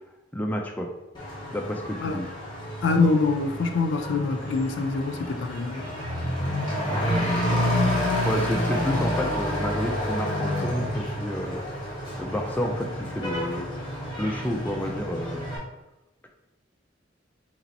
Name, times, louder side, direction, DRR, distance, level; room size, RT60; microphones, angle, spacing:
voice 1, 0.3-0.9 1.5-2.3 6.9-7.9 8.2-15.4, left 1 dB, 10° left, 2 dB, 0.3 m, -30 dB
Truck / Accelerating revving vroom, 1.1-15.6, left 1 dB, 25° left, 1.1 m, -29 dB
voice 2, 2.8-5.8, left 3 dB, 75° left, 5 dB, 0.4 m, -24 dB
3.0 x 2.9 x 4.0 m, 0.97 s
head